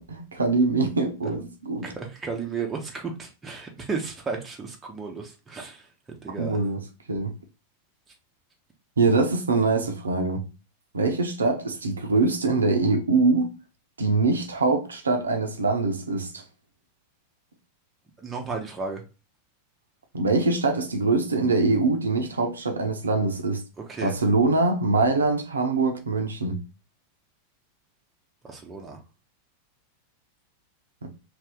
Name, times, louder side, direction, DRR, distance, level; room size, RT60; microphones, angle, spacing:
voice 1, 0.0-1.9 6.4-6.8 7.1-7.3 9.0-10.4 10.9-13.5 14.0-16.4 20.1-23.6 24.0-26.6, right 3 dB, 75° right, 0.5 m, -23 dB
voice 2, 1.8-5.9 6.2-6.6 18.2-19.0 23.9-24.1 28.4-29.0, right 4 dB, 15° right, 0.6 m, -33 dB
2.6 x 2.4 x 3.5 m
figure-of-eight pair, 90°, 0 cm